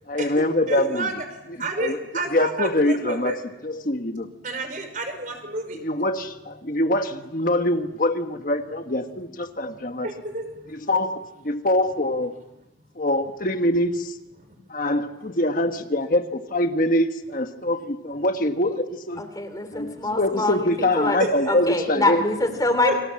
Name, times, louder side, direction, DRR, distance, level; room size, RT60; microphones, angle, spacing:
voice 1, 0.1-1.1 1.5-2.0 2.3-3.4 3.6-4.3 5.8-10.1 10.7-12.3 12.9-14.2 14.7-19.2 19.7-22.2, left 1 dB, 45° left, 6 dB, 1.4 m, -24 dB
voice 2, 0.7-1.2 1.6-3.3 4.4-5.8 10.0-10.5 14.4-14.6 21.9-22.1 22.8-23.0, right 2 dB, 45° right, 6 dB, 5.8 m, -29 dB
voice 3, 19.2-20.7 20.9-21.2 21.5-23.0, left 2 dB, 20° left, 8 dB, 3.2 m, -24 dB
29.0 x 25.5 x 7.7 m, 0.95 s
head